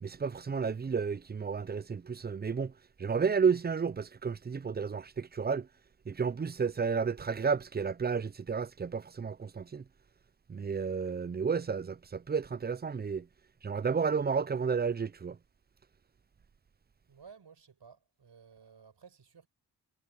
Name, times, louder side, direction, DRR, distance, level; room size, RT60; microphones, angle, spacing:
voice 1, 0.0-2.7 3.0-5.7 6.1-9.8 10.5-13.3 13.6-15.4, right 6 dB, 25° right, 0.4 m, -32 dB
voice 2, 17.1-19.5, right 6 dB, 90° right, 5.6 m, -55 dB
wide cardioid pair, 80°, 40 cm